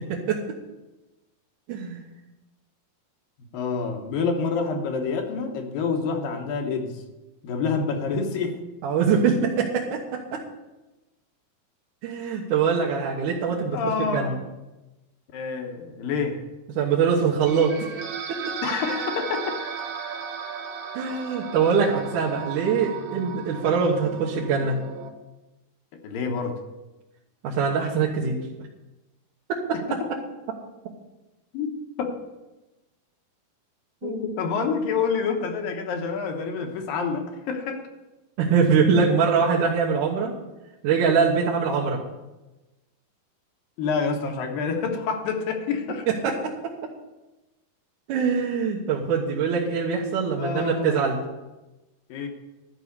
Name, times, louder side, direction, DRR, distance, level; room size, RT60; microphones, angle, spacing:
voice 1, 0.1-0.4 1.7-2.0 8.8-10.4 12.0-14.4 16.8-17.7 18.3-18.4 20.9-24.8 27.4-28.4 29.9-30.0 34.0-34.2 38.4-40.3 40.8-42.0 46.1-46.3 48.1-51.2, right 6 dB, 65° right, -4 dB, 2.5 m, -23 dB
voice 2, 3.5-6.9 7.4-8.6 13.7-14.4 15.3-16.4 18.6-19.5 26.0-26.6 29.7-29.8 31.5-31.7 32.0-32.1 34.0-37.8 43.8-46.1 50.4-51.0 52.1-52.3, left 5 dB, 75° left, 4 dB, 2.8 m, -27 dB
sound 1, 17.5-25.1, right 6 dB, 80° right, 3.1 m, -35 dB
12.0 x 5.5 x 8.0 m, 1.1 s
omnidirectional pair, 4.2 m